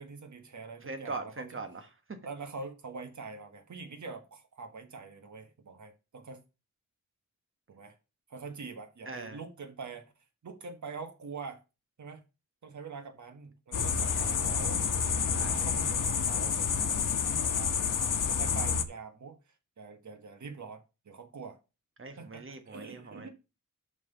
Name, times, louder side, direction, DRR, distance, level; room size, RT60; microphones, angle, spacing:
voice 1, 0.0-1.5 2.2-6.4 7.7-7.9 8.3-10.1 10.4-11.6 12.0-12.2 12.6-14.8 15.3-17.1 17.4-17.7 18.3-19.4 19.8-21.6 22.2-23.3, right 4 dB, 70° right, 1.6 m, -44 dB
voice 2, 0.8-2.2 9.0-9.4 14.0-14.3 15.3-15.7 22.0-23.3, right 3 dB, 40° right, 1.5 m, -42 dB
sound 1, 13.7-18.8, left 6 dB, 85° left, 0.9 m, -29 dB
6.2 x 5.6 x 5.8 m
wide cardioid pair, 155°, 31 cm